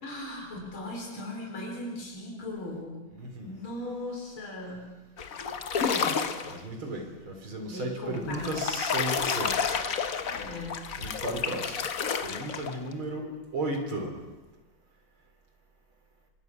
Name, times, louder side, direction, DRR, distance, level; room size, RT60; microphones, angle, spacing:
voice 1, 0.0-3.1 3.5-5.0 5.8-6.3 7.7-8.7 10.3-11.0, left 1 dB, 90° left, 0 dB, 5.0 m, -38 dB
voice 2, 3.1-3.5 6.5-9.8 11.0-11.8 12.2-14.1, right 1 dB, 85° right, 3 dB, 4.7 m, -34 dB
sound 1, 5.2-6.6 8.2-12.9, left 6 dB, 50° left, 1.4 m, -30 dB
26.0 x 25.0 x 6.1 m, 1.2 s
omnidirectional pair, 2.2 m